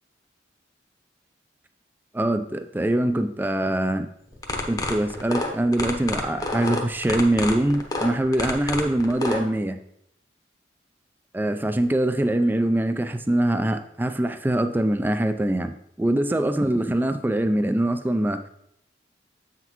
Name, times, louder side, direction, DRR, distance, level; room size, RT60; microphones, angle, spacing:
voice 1, 2.1-4.1 4.7-9.8 11.3-18.5, right 1 dB, 10° right, 9 dB, 0.3 m, -23 dB
sound 1, 4.3-9.4, left 2 dB, 20° left, 0.8 m, -28 dB
8.0 x 5.9 x 3.0 m, 0.75 s
head